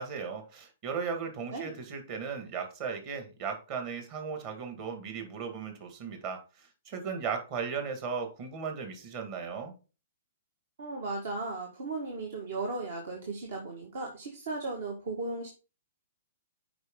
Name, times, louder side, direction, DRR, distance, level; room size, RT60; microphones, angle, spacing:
voice 1, 0.0-9.8, right 6 dB, 40° right, 2.1 m, -36 dB
voice 2, 10.8-15.5, right 3 dB, 65° right, 1.8 m, -36 dB
7.9 x 5.3 x 3.8 m
hypercardioid pair, 130°, 0 cm